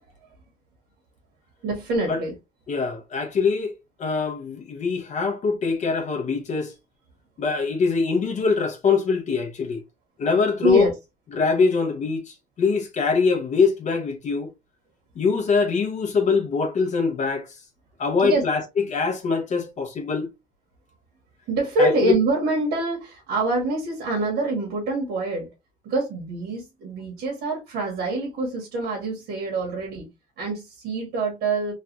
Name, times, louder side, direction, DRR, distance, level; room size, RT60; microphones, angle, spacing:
voice 1, 1.6-2.3 10.6-10.9 18.2-18.4 21.5-25.5 25.8-30.1 30.4-31.7, right 2 dB, 80° right, 1.3 m, -25 dB
voice 2, 2.7-3.7 4.0-6.7 7.4-9.8 10.2-10.9 11.3-14.5 15.2-17.5 18.0-20.3 21.8-22.2, left 5 dB, 45° left, 0.7 m, -23 dB
3.2 x 2.4 x 2.7 m
cardioid pair, 110°, 17 cm